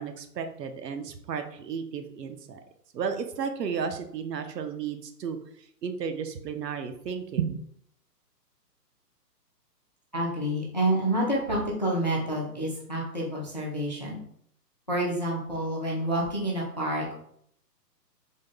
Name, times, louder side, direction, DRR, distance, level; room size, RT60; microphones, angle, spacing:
voice 1, 0.0-2.6 2.9-5.4 5.8-7.6, right 6 dB, 75° right, 7 dB, 0.7 m, -33 dB
voice 2, 10.1-14.2 14.9-17.1, right 1 dB, 30° left, -3 dB, 0.4 m, -28 dB
3.6 x 2.2 x 3.7 m, 0.67 s
hypercardioid pair, 155°, 50 cm